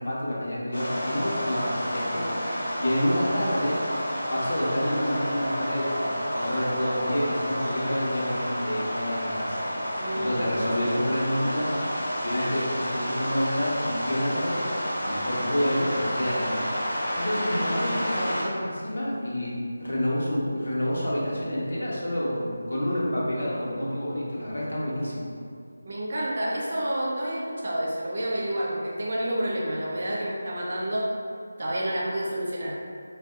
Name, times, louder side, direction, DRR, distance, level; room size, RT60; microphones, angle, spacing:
voice 1, 0.0-3.8 4.3-9.6 10.1-11.8 12.2-14.6 15.0-16.7 17.1-25.3, equal, 75° left, -6 dB, 0.9 m, -28 dB
sound 1, 0.7-18.4, equal, 20° left, 1.3 m, -30 dB
voice 2, 10.0-10.5 25.8-31.1 31.6-32.7, right 1 dB, 35° right, -5 dB, 0.5 m, -29 dB
2.6 x 2.2 x 3.5 m, 2.2 s
figure-of-eight pair, 180°, 0 cm